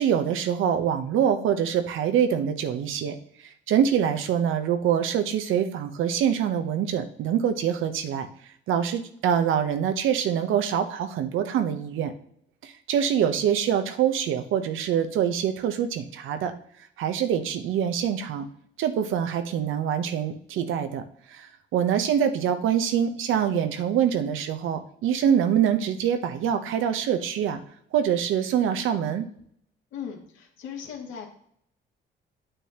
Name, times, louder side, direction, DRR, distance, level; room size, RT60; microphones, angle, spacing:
voice 1, 0.0-3.2 3.7-8.3 8.7-12.1 12.6-16.5 17.0-18.5 18.8-21.0 21.3-21.5 21.7-27.6 27.9-29.2, right 8 dB, 85° right, 8 dB, 0.9 m, -25 dB
voice 2, 29.9-31.3, left 7 dB, 90° left, 0 dB, 2.3 m, -38 dB
9.0 x 8.3 x 2.9 m, 0.67 s
cardioid pair, 90°, 20 cm